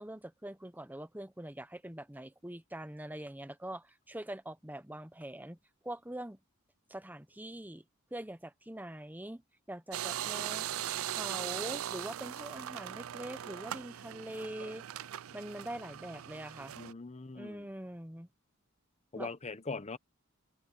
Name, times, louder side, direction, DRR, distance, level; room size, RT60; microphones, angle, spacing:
voice 1, 0.0-5.6 5.8-6.4 6.9-7.8 8.1-9.4 9.7-10.7 11.1-14.8 15.3-16.7 17.3-18.3 19.1-19.3, right 1 dB, 10° right, 1.1 m, -43 dB
sound 1, 9.9-16.9, right 11 dB, 75° right, 0.4 m, -39 dB
voice 2, 16.8-17.7 19.1-20.0, left 3 dB, 30° left, 0.9 m, -41 dB
open air
head